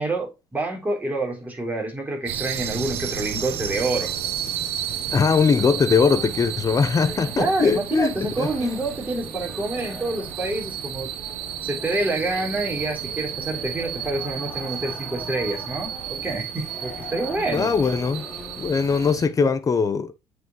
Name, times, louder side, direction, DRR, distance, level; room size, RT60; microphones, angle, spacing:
voice 1, 0.0-4.1 7.4-11.1 11.6-17.7 19.4-19.5, right 2 dB, 15° right, 3.5 m, -27 dB
sound 1, 2.3-19.3, right 10 dB, 70° right, 0.9 m, -32 dB
sound 2, 3.5-19.1, left 1 dB, 10° left, 3.8 m, -42 dB
voice 2, 5.1-8.7 17.5-18.2 18.6-20.1, left 5 dB, 30° left, 0.9 m, -21 dB
8.0 x 4.9 x 3.1 m
supercardioid pair, 75°, 11 cm